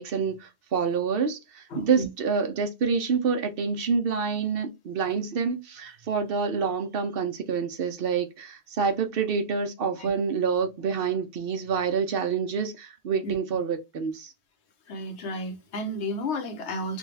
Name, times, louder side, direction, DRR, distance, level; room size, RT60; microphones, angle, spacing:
voice 1, 0.0-14.3, right 5 dB, 60° right, 0.8 m, -27 dB
voice 2, 1.7-2.1 10.0-10.1 13.2-13.3 14.9-17.0, left 1 dB, 80° left, 1.1 m, -32 dB
3.3 x 2.3 x 3.2 m
omnidirectional pair, 1.1 m